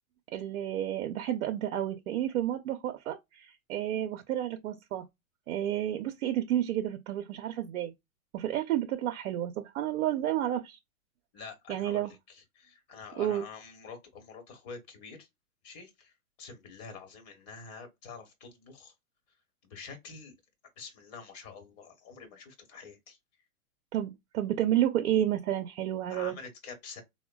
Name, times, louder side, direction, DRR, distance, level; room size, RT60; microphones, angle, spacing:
voice 1, 0.3-5.0 5.5-7.9 8.3-10.8 11.7-12.1 13.2-13.5 23.9-26.3, right 12 dB, 70° right, 0.6 m, -31 dB
voice 2, 11.3-15.3 15.6-16.1 16.4-18.9 19.6-20.3 20.8-23.2 26.1-27.0, left 5 dB, 35° left, 1.2 m, -47 dB
3.6 x 2.1 x 2.2 m
hypercardioid pair, 130°, 43 cm